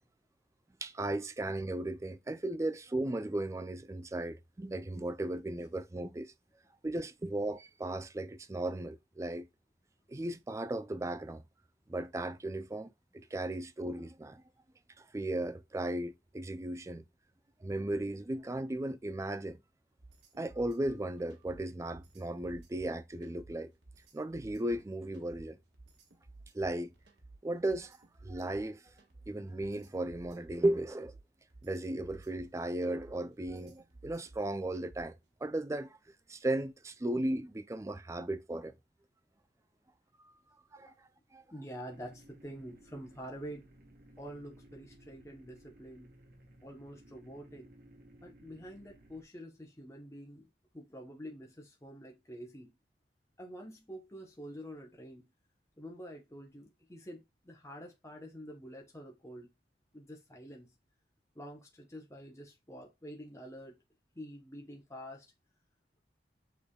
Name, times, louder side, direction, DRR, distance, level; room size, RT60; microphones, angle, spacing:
voice 1, 0.8-6.3 6.8-9.5 10.1-11.4 11.9-14.4 15.1-17.0 17.6-19.6 20.4-23.7 24.1-25.6 26.5-26.9 27.4-28.0 28.2-28.8 29.3-31.1 31.6-35.1 35.4-36.0 36.3-38.7 40.2-40.3 40.7-40.9 41.3-41.4, right 1 dB, 15° right, 0.4 m, -36 dB
sound 1, 20.0-35.2, right 2 dB, 90° right, 1.4 m, -56 dB
voice 2, 41.5-43.7 44.2-46.1 46.6-47.7 48.2-50.5 50.7-52.7 53.4-55.3 55.8-59.5 59.9-60.7 61.3-63.8 64.1-65.3, equal, 15° left, 0.9 m, -47 dB
sound 2, 41.9-49.2, right 1 dB, 60° right, 1.1 m, -59 dB
6.5 x 3.3 x 2.3 m
head